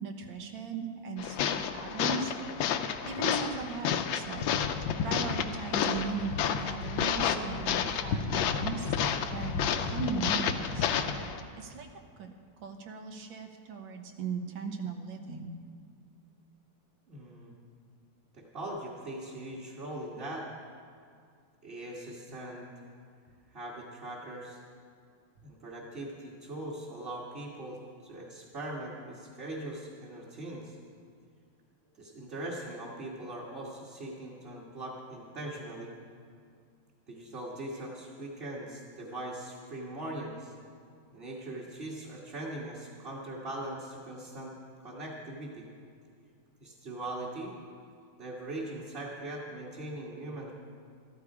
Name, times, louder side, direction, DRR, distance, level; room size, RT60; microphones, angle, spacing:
voice 1, 0.0-2.3 3.0-4.5 5.0-9.0 9.3-10.9 11.6-11.9 12.2-15.6, right 5 dB, 75° right, 5 dB, 1.8 m, -38 dB
sound 1, 1.2-11.4, left 7 dB, 80° left, 1.4 m, -30 dB
voice 2, 17.1-17.5 18.3-20.5 21.6-22.7 23.5-24.6 25.4-30.8 32.0-35.9 37.1-40.5 41.1-44.5 44.8-45.7 46.6-47.6 48.2-50.5, right 1 dB, 30° right, -6 dB, 1.6 m, -40 dB
13.5 x 13.0 x 4.8 m, 2.2 s
omnidirectional pair, 2.2 m